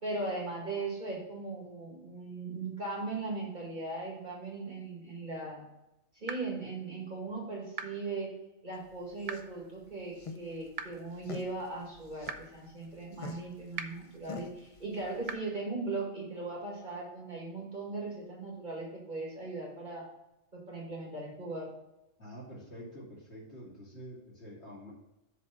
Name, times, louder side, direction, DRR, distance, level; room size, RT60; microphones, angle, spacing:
voice 1, 0.0-5.6 6.1-8.3 8.6-20.1 20.5-21.7, right 3 dB, 35° right, -3 dB, 2.1 m, -38 dB
sound 1, 6.3-6.4 7.8-7.9 9.3-9.4 10.8-10.9 12.3-12.4 13.8-13.9 15.3-15.4, right 6 dB, 60° right, 0.4 m, -36 dB
sound 2, 8.7-15.3, left 4 dB, 35° left, 0.5 m, -47 dB
voice 2, 22.2-24.9, equal, 55° left, -5 dB, 3.0 m, -47 dB
7.4 x 3.9 x 6.0 m, 0.92 s
omnidirectional pair, 1.4 m